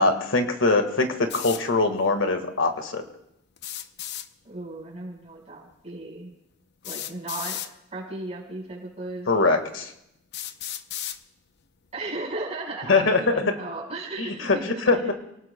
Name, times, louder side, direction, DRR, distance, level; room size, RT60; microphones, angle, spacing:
voice 1, 0.0-3.0 9.3-9.9 12.9-13.4 14.2-15.1, left 3 dB, 85° left, 6 dB, 1.7 m, -22 dB
sound 1, 1.3-1.6 3.6-4.3 5.7-5.8 6.8-7.7 8.7-8.8 9.5-9.6 10.3-11.2, left 11 dB, 60° left, 0.7 m, -34 dB
voice 2, 4.4-6.3 6.8-7.6 7.9-9.5 11.9-15.1, right 2 dB, 35° right, -2 dB, 4.9 m, -35 dB
28.5 x 18.5 x 2.2 m, 0.79 s
head